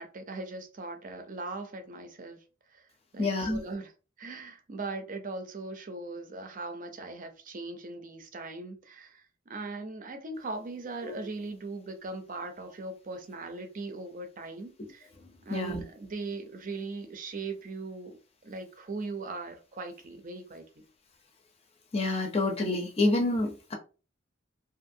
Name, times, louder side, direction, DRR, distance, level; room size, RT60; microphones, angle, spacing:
voice 1, 0.0-2.4 2.7-2.9 3.1-3.9 4.2-15.1 15.4-18.2 18.4-20.9, right 3 dB, 45° right, 0.6 m, -39 dB
voice 2, 3.2-3.6 11.0-11.2 15.5-15.8 21.9-23.7, left 2 dB, 30° left, 0.6 m, -28 dB
2.7 x 2.6 x 2.6 m
head